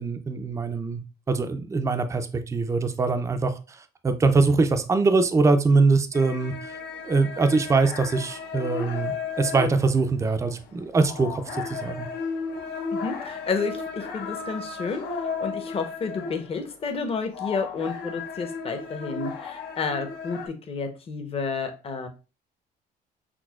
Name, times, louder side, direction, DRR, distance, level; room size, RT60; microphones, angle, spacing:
voice 1, 0.0-6.8 7.1-12.1, right 3 dB, 15° right, 8 dB, 0.4 m, -23 dB
sound 1, 6.1-16.7 17.1-20.5, left 5 dB, 75° left, 0.9 m, -35 dB
voice 2, 12.9-15.0 15.4-22.1, left 4 dB, 35° left, 5 dB, 0.8 m, -30 dB
6.0 x 2.1 x 2.3 m, 0.30 s
cardioid pair, 110°, 17 cm